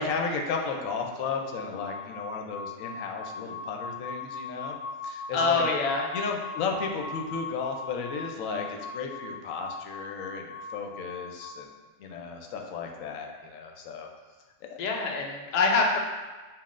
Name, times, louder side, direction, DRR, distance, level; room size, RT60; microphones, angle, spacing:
voice 1, 0.0-4.8 5.0-5.6 6.1-11.7 12.0-14.1 14.6-14.8, left 4 dB, 70° left, 2 dB, 1.0 m, -34 dB
sound 1, 1.5-11.6, left 4 dB, 50° right, 0.9 m, -39 dB
voice 2, 5.3-6.0 14.8-16.0, left 3 dB, 90° left, 0 dB, 0.3 m, -25 dB
7.2 x 2.5 x 2.4 m, 1.3 s
omnidirectional pair, 1.5 m